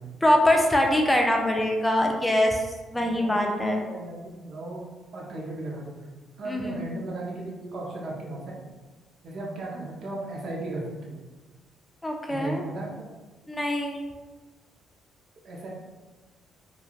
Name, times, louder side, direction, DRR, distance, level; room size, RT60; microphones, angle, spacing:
voice 1, 0.2-2.6 2.9-3.8 6.5-6.8 12.0-12.6 13.5-14.0, left 1 dB, 10° left, 2 dB, 0.4 m, -23 dB
voice 2, 2.9-4.8 5.1-6.1 6.4-8.6 9.2-11.2 12.3-13.1 15.4-15.7, right 2 dB, 60° right, -2 dB, 0.7 m, -36 dB
3.1 x 2.3 x 2.4 m, 1.2 s
cardioid pair, 110°, 0 cm